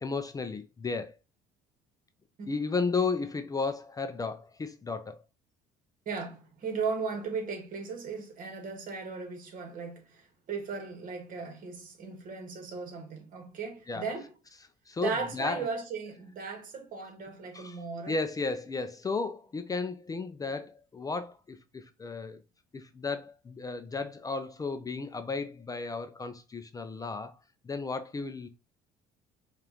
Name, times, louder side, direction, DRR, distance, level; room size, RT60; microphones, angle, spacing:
voice 1, 0.0-1.1 2.5-5.2 13.9-14.0 14.9-15.7 17.5-17.8 18.1-22.4 22.7-27.3 27.6-28.5, left 4 dB, 20° left, 0.4 m, -34 dB
voice 2, 6.0-14.3 15.0-18.2, right 5 dB, 55° right, 1.5 m, -37 dB
5.0 x 2.5 x 2.9 m
cardioid pair, 100°, 17 cm